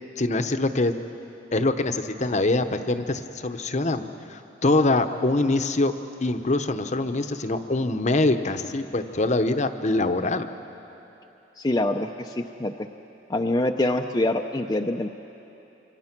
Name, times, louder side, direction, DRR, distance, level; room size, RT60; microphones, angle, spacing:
voice 1, 0.2-0.9 1.5-5.9 6.2-10.5, left 2 dB, 40° left, 9 dB, 0.9 m, -24 dB
voice 2, 11.6-12.7 13.3-15.1, left 1 dB, 20° left, 3 dB, 0.6 m, -25 dB
26.5 x 25.5 x 6.0 m, 3.0 s
head